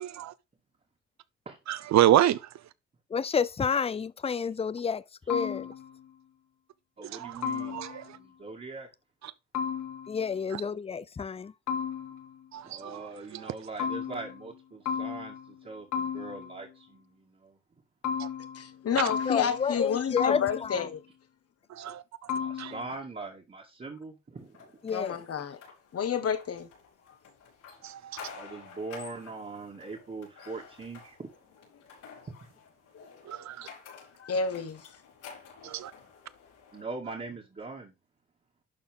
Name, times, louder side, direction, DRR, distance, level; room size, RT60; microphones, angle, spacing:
voice 1, 1.7-2.4 7.2-7.3 7.7-7.9 12.5-13.0 18.2-18.3 21.7-22.0 22.6-22.7 27.8-28.3 33.3-33.7 35.6-35.9, right 12 dB, 65° right, 0.7 m, -26 dB
voice 2, 3.1-5.7 10.1-11.5 19.3-20.9 24.8-25.2, left 6 dB, 20° left, 0.5 m, -30 dB
sound 1, 5.3-6.1 7.4-8.2 9.5-10.3 11.7-12.5 13.8-14.6 14.9-15.6 15.9-16.7 18.0-18.8 19.1-19.9 20.2-21.0 22.3-22.9, left 7 dB, 70° left, 2.0 m, -34 dB
voice 3, 7.0-7.8 8.1-8.9 12.6-17.6 22.3-24.7 28.3-31.3 32.3-32.5 36.7-37.9, right 3 dB, 30° right, 2.3 m, -41 dB
voice 4, 18.5-21.0 24.9-25.6 25.9-26.7 32.9-33.0 33.4-34.9, left 6 dB, 50° left, 1.5 m, -30 dB
sound 2, 24.5-36.8, left 6 dB, 90° left, 5.2 m, -51 dB
11.5 x 4.2 x 3.6 m
cardioid pair, 90°, 30 cm